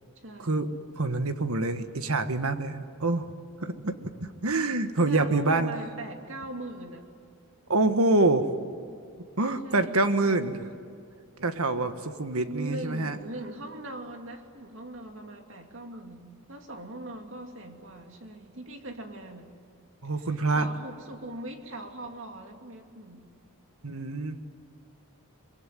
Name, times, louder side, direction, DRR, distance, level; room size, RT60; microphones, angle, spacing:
voice 1, 0.2-0.8 5.0-7.1 9.6-10.3 12.4-19.5 20.2-20.3 20.5-23.3, right 1 dB, 60° right, 4 dB, 2.6 m, -41 dB
voice 2, 1.0-3.3 3.6-3.9 4.2-5.7 7.7-8.5 9.4-10.7 11.4-13.2 20.0-20.7 23.8-24.4, right 2 dB, 75° right, 9 dB, 1.5 m, -26 dB
24.0 x 22.0 x 9.3 m, 2.3 s
head